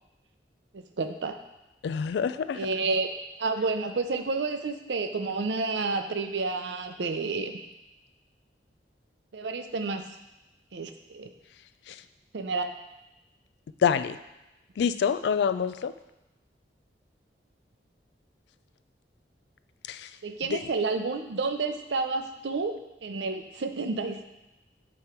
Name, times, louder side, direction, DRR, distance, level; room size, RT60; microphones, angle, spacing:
voice 1, 1.0-1.4 2.5-3.1 3.4-7.7 9.3-10.0 10.7-11.3 12.3-12.7 20.2-22.7 23.0-24.2, right 3 dB, 75° right, 7 dB, 0.6 m, -30 dB
voice 2, 1.8-2.7 11.9-12.0 13.8-14.2 14.8-15.9 19.9-20.1 20.5-20.6, left 7 dB, 70° left, 13 dB, 0.3 m, -26 dB
8.6 x 3.1 x 4.4 m, 0.98 s
head